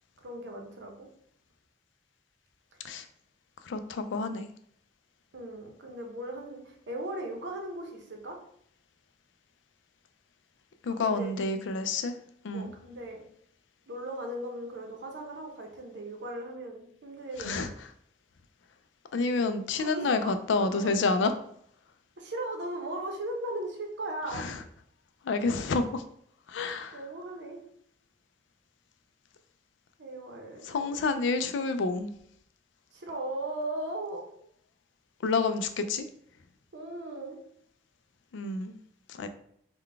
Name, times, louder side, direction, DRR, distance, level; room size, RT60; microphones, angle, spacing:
voice 1, 0.2-1.1 5.3-8.4 10.9-11.3 12.5-13.2 13.9-17.6 19.8-20.3 20.7-21.3 22.2-24.5 26.9-27.6 30.0-31.1 32.9-34.2 36.7-37.4, right 1 dB, 75° right, 2 dB, 0.8 m, -38 dB
voice 2, 3.6-4.5 10.8-12.2 12.4-12.7 17.4-17.7 19.1-21.3 24.3-24.6 25.2-26.0 26.5-27.0 30.6-32.1 35.2-36.1 38.3-38.8 39.1-39.3, left 3 dB, 80° left, 9 dB, 0.4 m, -29 dB
3.8 x 2.2 x 3.3 m, 0.66 s
head